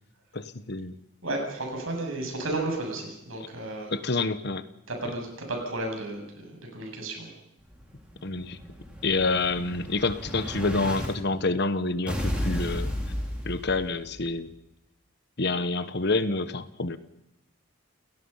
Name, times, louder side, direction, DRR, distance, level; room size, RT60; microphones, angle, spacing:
voice 1, 0.3-1.0 3.9-4.6 8.2-8.6 9.0-12.9 13.4-14.5 15.4-17.0, left 3 dB, 50° left, 13 dB, 1.2 m, -28 dB
voice 2, 1.2-3.9 4.9-7.3, right 2 dB, 75° right, 2 dB, 7.9 m, -33 dB
Explosion, 7.7-11.1 12.1-14.1, equal, 5° right, 5.1 m, -33 dB
29.5 x 17.5 x 5.7 m, 0.87 s
head